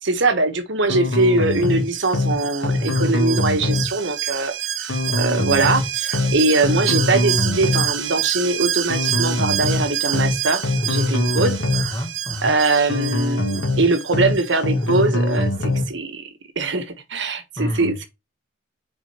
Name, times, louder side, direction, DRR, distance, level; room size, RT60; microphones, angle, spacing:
voice 1, 0.0-4.5 4.8-11.6 12.4-16.3 16.6-18.1, right 3 dB, 70° right, 1.2 m, -22 dB
sound 1, 0.9-1.8 2.1-2.3 2.6-3.9 4.9-5.8 6.1-6.3 6.6-7.9 8.9-9.8 10.1-10.3 10.6-11.9 12.9-13.8 14.1-14.3 14.6-15.9, left 2 dB, 90° left, 1.8 m, -22 dB
Alarm, 1.5-15.0 15.3-15.4, right 11 dB, 90° right, 1.1 m, -28 dB
voice 2, 11.7-12.5 17.6-17.9, equal, 20° left, 2.6 m, -29 dB
7.2 x 4.4 x 3.0 m
head